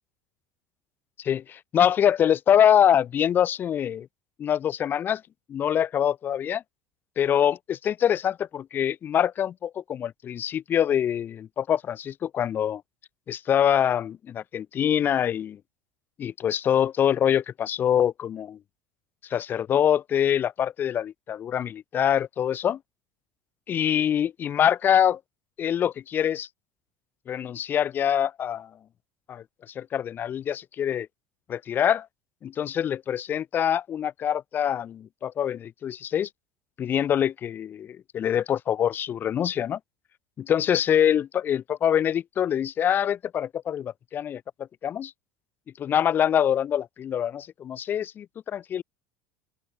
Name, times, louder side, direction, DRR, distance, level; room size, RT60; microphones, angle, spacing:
voice 1, 1.2-4.1 4.4-5.2 5.5-6.6 7.2-12.8 13.3-15.6 16.2-18.6 19.3-22.8 23.7-25.2 25.6-26.5 27.3-28.7 29.3-29.4 29.8-31.1 31.5-32.1 32.4-36.3 36.8-39.8 40.4-44.4 44.8-45.1 45.8-48.8, left 9 dB, 35° left, 1.6 m, -24 dB
open air
supercardioid pair, 125°, 6 cm